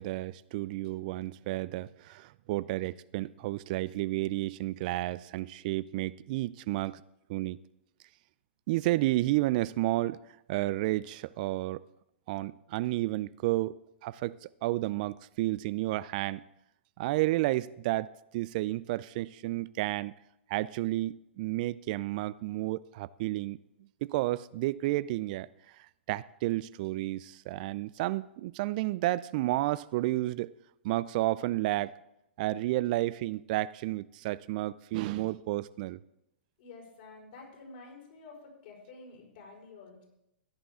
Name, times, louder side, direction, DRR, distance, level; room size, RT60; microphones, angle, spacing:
voice 1, 0.0-7.0 7.3-7.6 8.7-10.2 10.5-11.8 12.3-13.8 14.0-16.4 17.0-18.1 18.3-20.1 20.5-23.6 24.0-25.5 25.8-30.5 30.8-32.0 32.4-36.0, right 17 dB, 45° right, 0.3 m, -31 dB
voice 2, 36.6-40.1, left 3 dB, 55° left, 5.0 m, -50 dB
15.5 x 10.0 x 3.7 m
hypercardioid pair, 115°, 6 cm